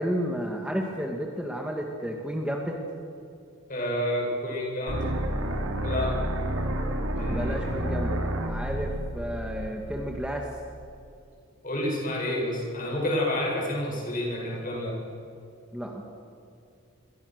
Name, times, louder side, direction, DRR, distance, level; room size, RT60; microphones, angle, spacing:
voice 1, 0.0-2.8 7.3-8.2 8.4-10.5 15.7-16.0, equal, 5° right, 0 dB, 1.8 m, -31 dB
voice 2, 3.7-5.1 5.8-6.2 7.2-7.5 11.6-15.0, left 1 dB, 40° left, -2 dB, 8.0 m, -29 dB
sound 1, 4.9-10.8, right 1 dB, 85° right, 3.1 m, -30 dB
28.0 x 23.0 x 6.6 m, 2.5 s
head